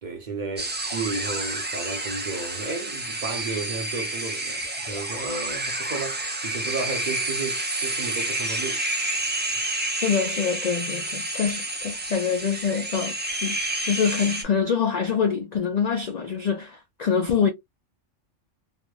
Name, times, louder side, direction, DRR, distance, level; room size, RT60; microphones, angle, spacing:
voice 1, 0.0-8.8 9.2-9.3, right 3 dB, 50° right, 0.6 m, -33 dB
sound 1, 0.6-14.4, right 2 dB, 15° right, 0.3 m, -29 dB
voice 2, 10.0-13.2 13.4-17.5, left 6 dB, 80° left, 0.3 m, -25 dB
3.1 x 2.1 x 2.2 m
omnidirectional pair, 1.3 m